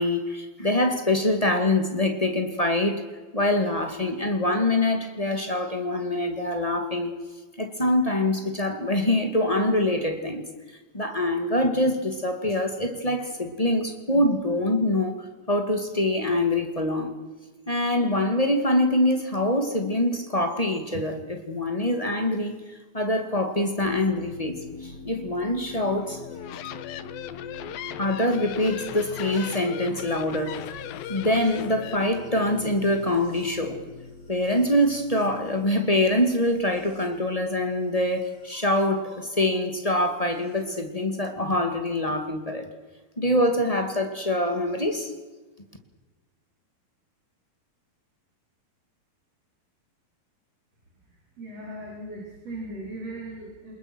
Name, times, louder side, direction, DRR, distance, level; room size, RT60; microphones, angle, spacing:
voice 1, 0.0-3.0 3.3-7.1 7.6-10.5 10.9-17.2 17.7-22.6 22.9-26.2 28.0-30.6 31.1-33.8 34.3-42.7 43.2-45.1, left 1 dB, 15° left, 1.3 m, -24 dB
sound 1, 23.8-38.9 40.0-40.7, left 3 dB, 40° left, 8.2 m, -43 dB
sound 2, 26.2-32.0, left 12 dB, 80° left, 2.8 m, -38 dB
voice 2, 51.1-53.7, right 1 dB, 40° right, 5.5 m, -38 dB
28.0 x 21.0 x 6.2 m
omnidirectional pair, 4.3 m